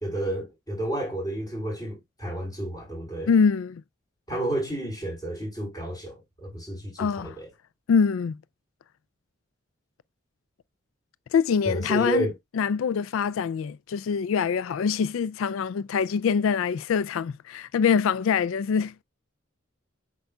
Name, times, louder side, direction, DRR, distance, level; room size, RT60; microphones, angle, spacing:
voice 1, 0.0-3.3 4.3-7.5 11.7-12.3, right 1 dB, 20° left, 4.0 m, -31 dB
voice 2, 3.3-3.8 7.0-7.4 7.9-8.4 11.3-12.3 12.5-19.0, left 6 dB, 85° left, 0.3 m, -24 dB
8.0 x 5.4 x 2.2 m
head